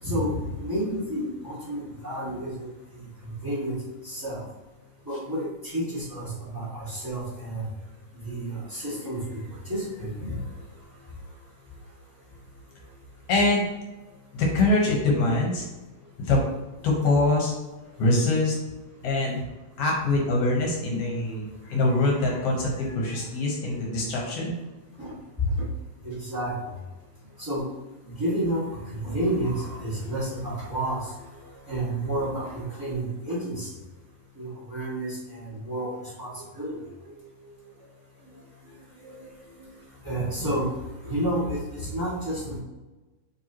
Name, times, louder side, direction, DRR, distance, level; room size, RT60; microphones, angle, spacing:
voice 1, 0.0-2.6 3.2-3.7 4.0-4.4 5.1-7.7 8.2-10.4 25.0-25.1 25.4-25.6 26.0-26.5 27.4-27.6 28.0-28.6 28.9-31.1 31.7-33.7 34.3-35.9 36.2-36.8 39.0-39.3 39.6-39.7 40.0-40.7 41.0-42.6, right 1 dB, 10° right, -8 dB, 0.9 m, -30 dB
voice 2, 13.3-13.7 14.3-15.7 16.2-16.4 16.8-17.5 18.0-18.5 19.0-19.4 19.8-24.6, left 2 dB, 60° left, -1 dB, 1.9 m, -24 dB
9.3 x 3.7 x 3.0 m, 1.1 s
omnidirectional pair, 4.0 m